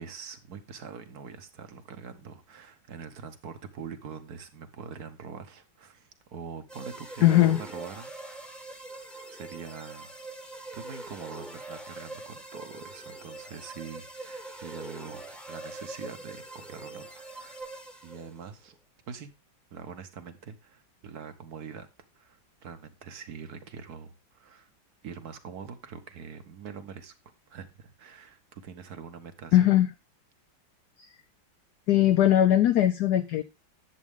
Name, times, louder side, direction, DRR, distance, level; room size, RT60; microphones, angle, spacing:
voice 1, 0.0-8.1 9.3-10.1 10.5-17.1 17.3-17.7 18.0-18.8 19.1-19.3 19.7-21.9 22.1-24.7 25.0-27.1 27.5-29.7, right 6 dB, 55° right, 1.4 m, -44 dB
sound 1, 6.7-18.5, right 2 dB, ahead, 1.0 m, -43 dB
voice 2, 7.2-7.6 29.5-29.9 31.0-31.1 31.9-33.4, left 12 dB, 70° left, 1.0 m, -20 dB
11.0 x 7.6 x 3.6 m
omnidirectional pair, 2.1 m